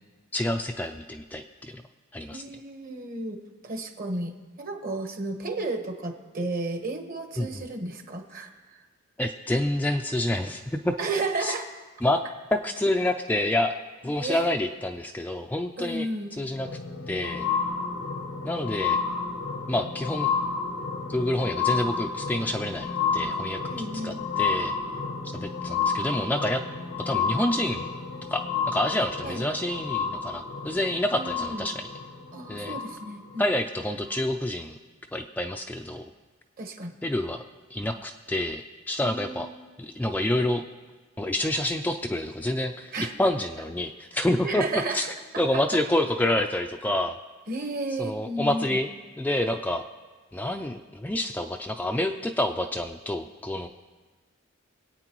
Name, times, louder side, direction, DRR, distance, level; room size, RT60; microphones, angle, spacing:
voice 1, 0.3-1.8 2.1-2.4 7.4-7.6 9.2-10.9 11.4-11.5 12.0-12.2 12.5-13.7 14.0-16.7 17.1-17.5 18.4-19.0 19.7-20.3 21.1-23.6 24.0-24.7 25.2-26.6 27.1-27.9 28.3-31.9 32.5-32.8 33.4-34.8 35.1-36.0 37.0-37.4 37.7-39.5 39.8-40.6 41.2-42.9 43.2-47.2 48.0-48.9 49.2-49.8 50.3-53.7, left 1 dB, 10° left, 4 dB, 0.4 m, -28 dB
voice 2, 2.3-3.4 3.6-8.8 11.0-11.7 14.1-14.5 15.8-16.3 23.6-24.2 29.2-29.4 31.1-31.7 32.3-33.5 36.6-36.9 39.0-39.6 42.9-43.1 44.1-45.0 45.5-45.8 47.5-48.8, right 2 dB, 45° right, 5 dB, 1.2 m, -33 dB
sound 1, 16.5-33.4 34.1-34.2, left 5 dB, 85° left, 1.0 m, -31 dB
25.0 x 8.8 x 3.0 m, 1.3 s
head